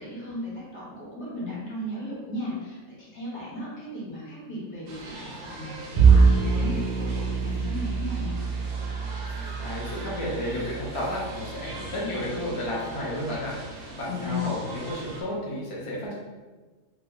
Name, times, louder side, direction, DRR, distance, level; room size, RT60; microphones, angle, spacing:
voice 1, 0.0-8.3 14.0-14.5, left 1 dB, 55° left, -7 dB, 1.4 m, -36 dB
sound 1, 4.9-15.2, right 2 dB, 65° right, 0.9 m, -41 dB
Bowed string instrument, 6.0-12.4, right 5 dB, 85° right, 0.4 m, -24 dB
voice 2, 9.6-13.5 14.0-16.1, left 1 dB, 35° left, -5 dB, 0.5 m, -32 dB
3.0 x 2.1 x 3.8 m, 1.3 s
omnidirectional pair, 1.4 m